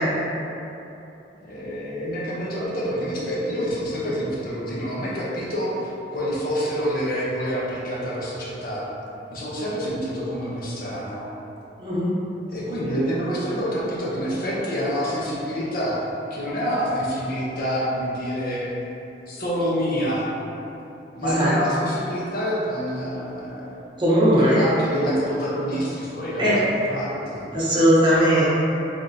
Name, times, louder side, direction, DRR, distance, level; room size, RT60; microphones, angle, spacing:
voice 1, 1.4-8.9 9.3-11.3 12.5-16.0 16.3-18.7 19.3-20.3 21.2-23.9 24.4-27.5, equal, 55° left, -7 dB, 0.8 m, -27 dB
voice 2, 21.2-21.5 24.0-24.6 26.4-26.6 27.5-28.5, equal, 25° right, -9 dB, 0.9 m, -18 dB
3.7 x 3.5 x 2.7 m, 2.9 s
head